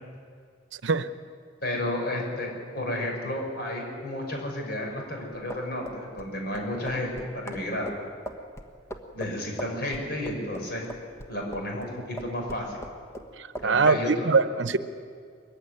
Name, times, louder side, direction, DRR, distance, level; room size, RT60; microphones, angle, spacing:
voice 1, 1.6-7.9 9.1-10.8 11.3-12.8 13.6-14.3, left 1 dB, 55° left, 1 dB, 5.8 m, -32 dB
sound 1, 5.5-11.9 12.2-13.3 13.6-13.7, equal, 15° left, 1.3 m, -40 dB
voice 2, 13.4-14.8, right 4 dB, 75° right, 12 dB, 0.8 m, -23 dB
22.0 x 15.5 x 9.8 m, 2.2 s
head